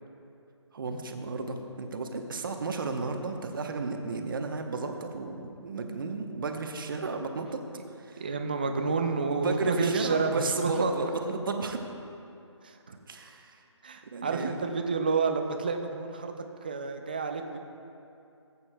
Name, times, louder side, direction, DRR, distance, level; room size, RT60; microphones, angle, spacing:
voice 1, 0.7-7.6 8.0-8.3 9.4-11.8 13.1-13.6 14.1-14.6, right 3 dB, 45° right, 5 dB, 0.8 m, -33 dB
voice 2, 8.2-11.1 12.6-13.0 13.8-16.3 16.6-17.6, right 4 dB, 20° right, 5 dB, 0.3 m, -29 dB
18.0 x 8.2 x 2.2 m, 2.7 s
hypercardioid pair, 165°, 16 cm